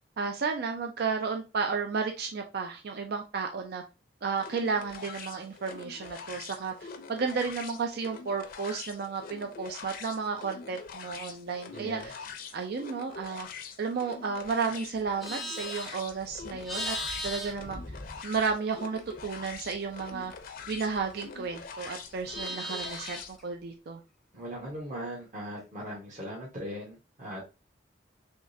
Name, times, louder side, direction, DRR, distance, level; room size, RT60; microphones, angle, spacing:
voice 1, 0.2-3.8 4.2-12.2 12.5-13.5 13.8-17.0 17.2-17.8 18.2-20.3 20.7-24.0, right 5 dB, 60° right, 4 dB, 0.4 m, -33 dB
sound 1, 4.4-23.4, left 5 dB, 55° left, 0.6 m, -44 dB
voice 2, 11.7-12.1 24.3-27.4, equal, 45° right, -4 dB, 1.0 m, -39 dB
Livestock farm animals working animals, 15.0-18.7 19.0-21.5 21.8-23.4, left 1 dB, ahead, 0.6 m, -39 dB
3.6 x 3.1 x 2.6 m, 0.29 s
head